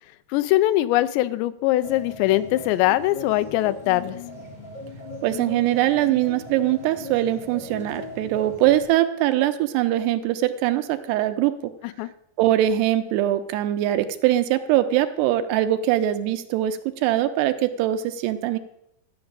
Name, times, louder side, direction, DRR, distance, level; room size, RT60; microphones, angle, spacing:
voice 1, 0.3-4.2 12.0-12.1, left 15 dB, 85° left, 14 dB, 2.8 m, -22 dB
sound 1, 1.8-8.8, left 3 dB, 20° left, 1.1 m, -38 dB
voice 2, 5.2-11.7 12.4-18.6, right 13 dB, 80° right, 9 dB, 2.8 m, -22 dB
13.5 x 6.2 x 8.8 m, 0.79 s
omnidirectional pair, 4.9 m